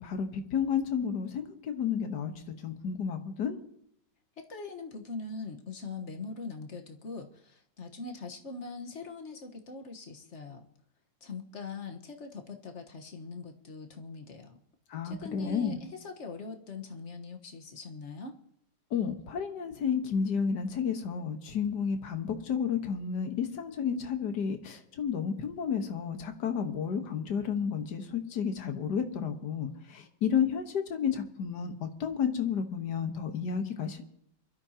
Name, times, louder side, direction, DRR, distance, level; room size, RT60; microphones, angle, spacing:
voice 1, 0.0-2.3 2.6-3.6 14.9-15.8 18.9-34.0, left 7 dB, 60° left, 6 dB, 1.9 m, -31 dB
voice 2, 4.4-10.7 11.2-14.6 15.0-18.4, left 4 dB, 40° left, 4 dB, 1.5 m, -42 dB
24.0 x 13.0 x 2.9 m, 0.72 s
omnidirectional pair, 2.0 m